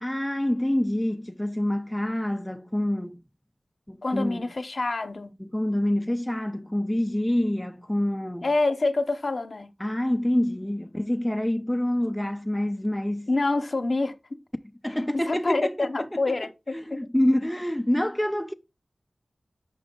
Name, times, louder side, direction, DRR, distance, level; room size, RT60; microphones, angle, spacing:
voice 1, 0.0-3.2 3.9-4.5 5.4-8.5 9.8-13.3 14.8-16.4 16.7-18.5, left 1 dB, 5° left, 0.4 m, -27 dB
voice 2, 4.0-5.4 8.4-9.7 13.3-14.1 14.9-17.1, left 2 dB, 55° left, 0.9 m, -27 dB
5.8 x 5.0 x 3.7 m
wide cardioid pair, 60°, 0 cm